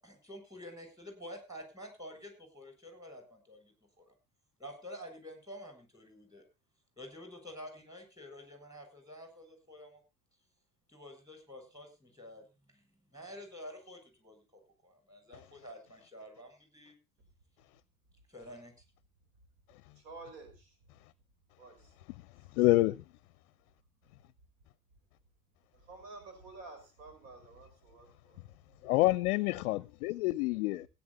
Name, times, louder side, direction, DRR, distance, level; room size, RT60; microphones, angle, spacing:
voice 1, 0.0-4.1 4.6-6.4 7.0-10.0 10.9-12.8 13.1-16.9 18.3-18.7, equal, 10° right, 7.3 m, -49 dB
voice 2, 20.0-20.5 21.6-21.8 25.9-28.1, right 3 dB, 60° right, 5.2 m, -49 dB
voice 3, 22.5-23.0 28.8-30.9, left 18 dB, 60° left, 0.6 m, -28 dB
16.5 x 10.5 x 4.1 m
figure-of-eight pair, 65°, 45 cm